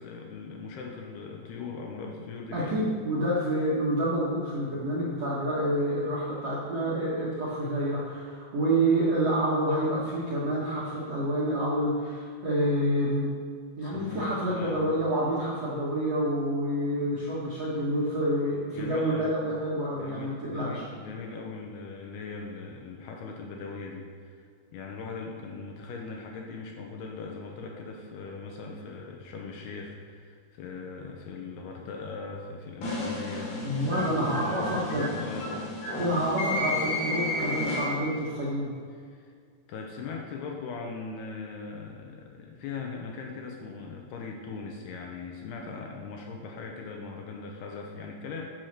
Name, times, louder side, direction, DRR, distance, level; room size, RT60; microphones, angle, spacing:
voice 1, 0.0-2.8 13.8-14.8 18.7-19.3 20.0-24.5 24.7-35.5 36.0-36.3 39.1-39.3 39.7-48.4, left 4 dB, 75° left, 1 dB, 2.7 m, -40 dB
voice 2, 2.5-13.3 13.8-20.8 33.6-35.1 36.0-38.7, right 1 dB, 60° right, -8 dB, 1.7 m, -28 dB
sound 1, 32.8-38.2, left 1 dB, 55° left, 4.0 m, -32 dB
10.5 x 6.2 x 6.6 m, 2.1 s
omnidirectional pair, 5.2 m